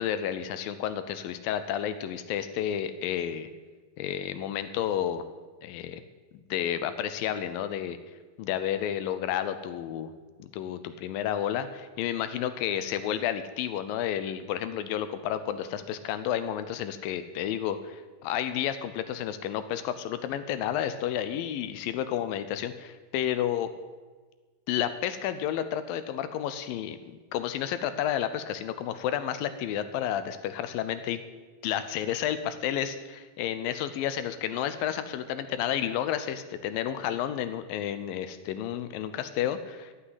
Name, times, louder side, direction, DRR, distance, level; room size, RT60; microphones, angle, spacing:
voice 1, 0.0-3.5 4.0-5.2 5.6-6.0 6.5-8.0 8.4-10.1 10.4-23.7 24.7-31.2 31.6-39.9, left 10 dB, 80° left, 11 dB, 2.3 m, -31 dB
14.0 x 6.0 x 9.7 m, 1.4 s
omnidirectional pair, 4.3 m